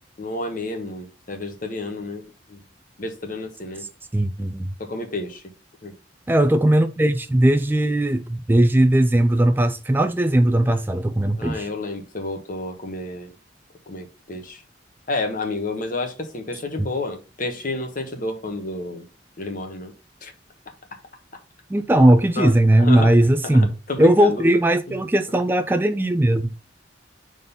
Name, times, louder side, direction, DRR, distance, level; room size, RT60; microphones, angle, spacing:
voice 1, 0.2-2.2 2.5-2.6 3.0-3.9 4.8-5.4 5.8-5.9 11.4-13.3 13.9-14.6 15.1-19.1 19.4-19.9 20.2-20.3 22.4-23.1 23.5-24.4 24.9-25.0, left 2 dB, 50° left, 1.2 m, -30 dB
voice 2, 4.1-4.7 6.3-11.7 21.7-23.7 24.0-26.5, right 1 dB, 10° right, 0.3 m, -18 dB
5.3 x 3.9 x 5.5 m
head